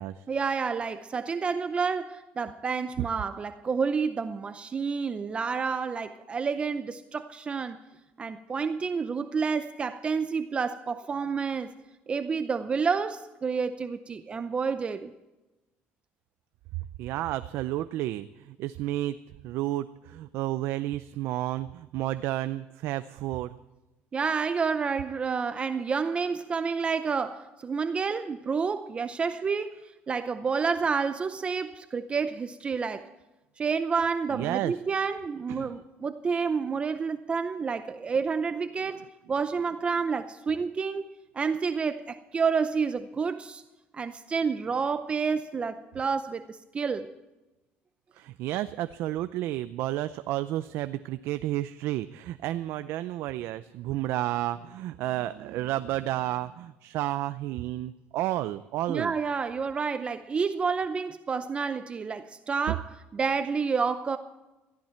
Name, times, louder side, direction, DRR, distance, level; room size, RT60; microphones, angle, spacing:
voice 1, 0.3-7.8 8.2-11.8 12.1-15.1 24.1-29.8 30.1-33.1 33.6-39.0 39.3-43.6 43.9-47.1 58.9-64.2, right 5 dB, 25° right, 0.6 m, -29 dB
voice 2, 17.0-19.2 19.4-23.6 34.3-34.7 35.5-35.7 48.2-59.1 62.7-62.8, right 14 dB, 65° right, 0.5 m, -31 dB
18.0 x 15.0 x 4.5 m
cardioid pair, 135°, 4 cm